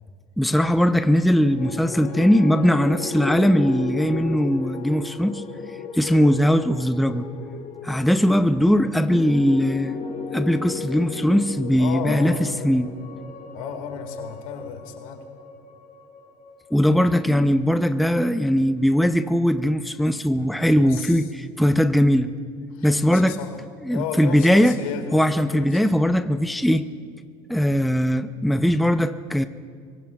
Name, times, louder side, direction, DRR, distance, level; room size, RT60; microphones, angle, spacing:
voice 1, 0.4-5.4 5.9-7.3 7.8-10.0 10.3-12.4 12.6-12.9 16.7-22.3 22.8-23.4 23.9-24.8 25.1-26.9 27.5-29.5, equal, ahead, 10 dB, 0.6 m, -20 dB
sound 1, 1.4-17.7, left 6 dB, 50° left, 3.0 m, -35 dB
voice 2, 11.7-12.8 13.5-15.2 20.8-21.2 22.7-23.6 23.9-25.8, left 7 dB, 85° left, 5 dB, 2.1 m, -34 dB
26.0 x 23.0 x 2.4 m, 2.1 s
hypercardioid pair, 85°, 18 cm